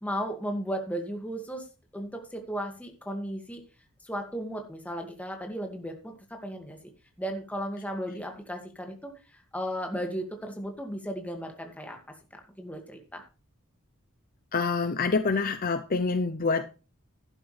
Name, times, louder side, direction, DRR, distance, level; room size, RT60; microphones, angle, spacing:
voice 1, 0.0-1.7 1.9-3.6 4.0-6.8 7.2-12.0 12.3-13.2, equal, 5° left, 3 dB, 2.1 m, -35 dB
voice 2, 14.5-16.8, left 4 dB, 40° left, 9 dB, 0.6 m, -27 dB
11.5 x 11.5 x 3.3 m, 0.33 s
head